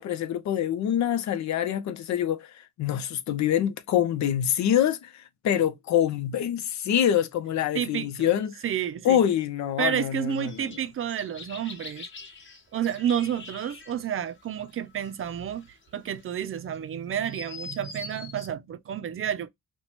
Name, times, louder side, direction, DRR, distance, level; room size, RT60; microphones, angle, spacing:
voice 1, 0.0-8.6 9.0-10.7, left 10 dB, 65° left, 0.6 m, -25 dB
voice 2, 7.7-8.3 8.6-9.2 9.8-12.1 12.7-19.5, right 9 dB, 45° right, 0.5 m, -30 dB
sound 1, 10.3-18.5, left 4 dB, 40° left, 1.1 m, -45 dB
2.9 x 2.2 x 4.1 m
cardioid pair, 90°, 30 cm